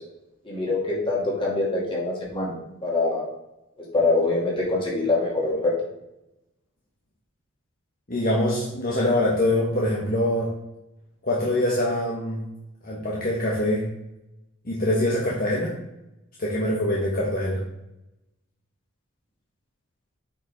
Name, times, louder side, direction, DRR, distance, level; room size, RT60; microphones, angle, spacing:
voice 1, 0.4-2.5 2.8-3.2 3.8-5.8, left 2 dB, 25° left, -4 dB, 2.5 m, -24 dB
voice 2, 8.1-10.5 11.2-12.4 12.8-13.9 14.6-15.7 16.4-17.6, left 1 dB, 45° left, -5 dB, 1.4 m, -24 dB
8.6 x 5.4 x 3.6 m, 0.89 s
head